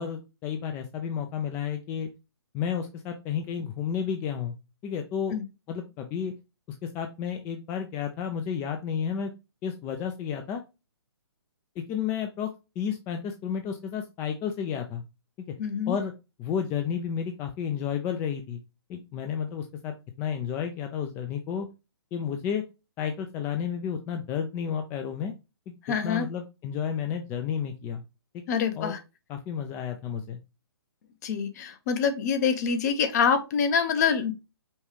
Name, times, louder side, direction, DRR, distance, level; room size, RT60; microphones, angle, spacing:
voice 1, 0.0-2.1 2.5-4.5 4.8-5.4 5.7-6.3 6.8-9.3 9.6-10.6 11.8-15.0 15.4-15.5 15.9-16.1 16.4-18.6 18.9-21.7 22.1-22.6 23.0-25.3 25.7-25.8 26.0-28.0 28.8-29.0 29.3-30.4, left 8 dB, 15° left, 6 dB, 0.3 m, -31 dB
voice 2, 15.6-16.0 25.8-26.3 28.5-29.0 31.2-34.3, left 6 dB, 40° left, 9 dB, 0.8 m, -25 dB
5.2 x 2.4 x 3.1 m, 0.26 s
figure-of-eight pair, 135°, 14 cm